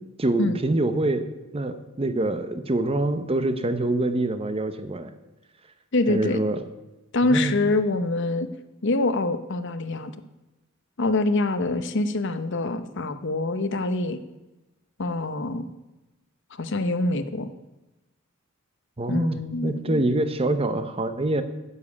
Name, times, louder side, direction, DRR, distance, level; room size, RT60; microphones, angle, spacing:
voice 1, 0.2-1.3 1.5-5.1 6.1-6.6 7.3-7.5 19.0-21.4, right 2 dB, 25° right, 10 dB, 0.8 m, -25 dB
voice 2, 5.9-6.4 7.1-8.5 8.8-10.1 11.0-14.2 15.0-15.7 16.6-17.5 19.1-20.0, left 2 dB, 60° left, 10 dB, 0.8 m, -25 dB
9.7 x 7.5 x 8.4 m, 1.0 s
head